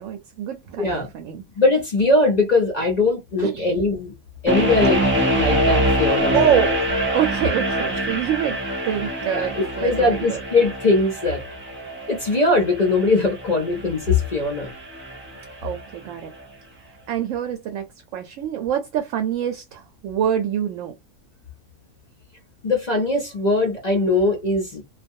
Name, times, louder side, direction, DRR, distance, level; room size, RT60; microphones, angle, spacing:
voice 1, 0.0-1.4 3.4-3.8 6.3-6.8 7.1-10.4 15.6-16.3 17.1-17.9 18.1-20.9, right 9 dB, 70° right, 0.8 m, -25 dB
voice 2, 1.6-4.1 4.4-6.6 9.3-11.4 12.1-14.7 22.6-24.8, left 2 dB, 45° left, 0.5 m, -21 dB
sound 1, 4.5-15.5, equal, 10° right, 0.6 m, -25 dB
2.4 x 2.2 x 2.6 m
omnidirectional pair, 1.6 m